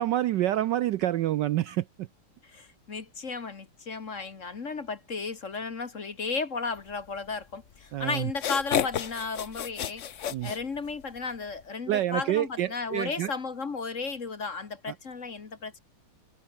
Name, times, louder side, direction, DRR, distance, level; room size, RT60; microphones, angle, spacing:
voice 1, 0.0-2.1 7.9-8.3 10.3-10.5 11.9-13.3, right 13 dB, 75° right, 1.1 m, -27 dB
voice 2, 2.4-10.0 10.4-15.8, left 4 dB, 40° left, 1.7 m, -34 dB
sound 1, 7.8-7.9 8.3-11.2, left 9 dB, 60° left, 0.7 m, -31 dB
omnidirectional pair, 2.3 m